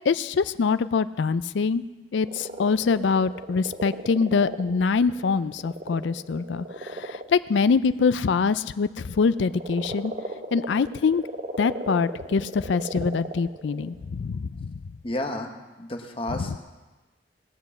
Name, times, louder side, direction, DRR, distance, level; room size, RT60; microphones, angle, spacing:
voice 1, 0.1-1.8 2.1-10.1 10.5-11.2 11.6-14.7 16.4-16.6, left 5 dB, 75° left, 14 dB, 0.4 m, -24 dB
sound 1, 2.3-7.3 8.9-13.9, right 1 dB, 45° right, 1.1 m, -36 dB
voice 2, 15.0-15.5 15.8-16.6, left 1 dB, 30° left, 4 dB, 1.1 m, -31 dB
18.5 x 7.6 x 7.1 m, 1.2 s
head